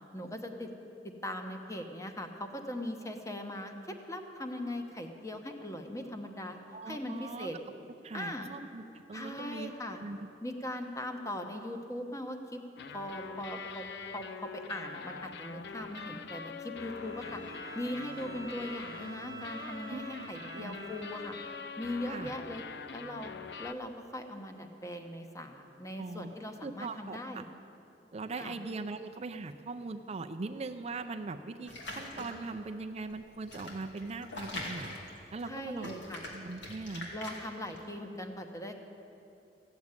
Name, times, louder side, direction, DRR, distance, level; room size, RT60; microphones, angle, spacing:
voice 1, 0.1-0.7 1.0-6.6 6.8-7.6 8.1-8.5 9.1-10.0 10.4-12.6 12.9-13.8 14.1-17.4 17.7-21.4 21.8-22.6 22.9-23.3 23.6-27.4 28.4-28.5 35.4-36.2 37.1-38.7, left 1 dB, 20° left, 5 dB, 1.0 m, -40 dB
voice 2, 6.7-7.5 8.0-10.2 16.0-16.2 19.9-20.8 22.1-22.3 26.0-26.3 26.6-27.4 28.1-35.0 35.3-36.0 36.3-37.1, right 3 dB, 35° right, 7 dB, 0.5 m, -41 dB
sound 1, 12.8-23.7, left 5 dB, 70° left, 0.6 m, -44 dB
Bowed string instrument, 16.8-21.7, right 6 dB, 20° right, 1.1 m, -49 dB
sound 2, 31.7-32.5 33.1-35.5 35.8-37.8, left 1 dB, 90° left, 2.5 m, -42 dB
15.0 x 7.2 x 9.6 m, 2.8 s
head